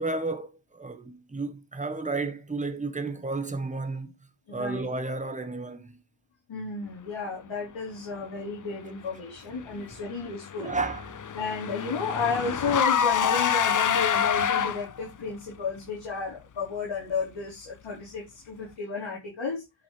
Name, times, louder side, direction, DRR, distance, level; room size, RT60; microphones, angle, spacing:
voice 1, 0.0-4.1 4.5-6.0 9.6-9.8 10.6-11.2, right 3 dB, 15° right, 1.3 m, -32 dB
voice 2, 4.5-4.8 6.5-10.7 11.3-19.6, left 4 dB, 70° left, 4.4 m, -32 dB
Car / Engine, 10.0-15.1, left 8 dB, 40° left, 0.6 m, -26 dB
11.0 x 6.0 x 3.3 m
wide cardioid pair, 115°, 48 cm